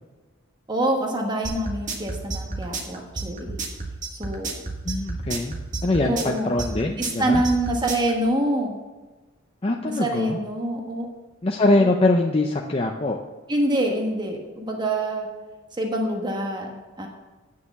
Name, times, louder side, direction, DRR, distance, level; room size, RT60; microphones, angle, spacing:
voice 1, 0.7-3.6 4.2-4.5 6.0-6.5 7.0-8.8 9.8-11.1 11.8-11.9 13.5-15.3 15.7-17.1, right 1 dB, 20° right, 1 dB, 1.3 m, -26 dB
sound 1, 1.4-8.1, right 3 dB, 35° right, 1.6 m, -30 dB
voice 2, 4.8-7.4 9.6-10.4 11.4-13.2, left 2 dB, 25° left, 1 dB, 0.6 m, -23 dB
9.5 x 6.6 x 7.2 m, 1.2 s
head